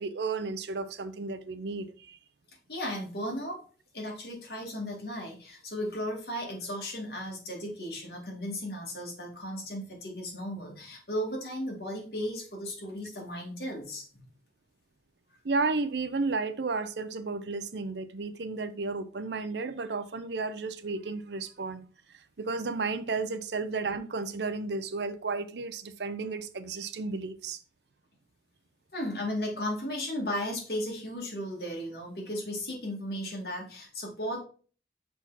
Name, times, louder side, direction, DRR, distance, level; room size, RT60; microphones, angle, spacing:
voice 1, 0.0-2.2 15.4-27.6, right 3 dB, 70° right, 0.6 m, -33 dB
voice 2, 2.7-3.6 3.9-14.0 28.9-34.4, equal, 60° left, 2.3 m, -35 dB
5.9 x 4.7 x 4.1 m
head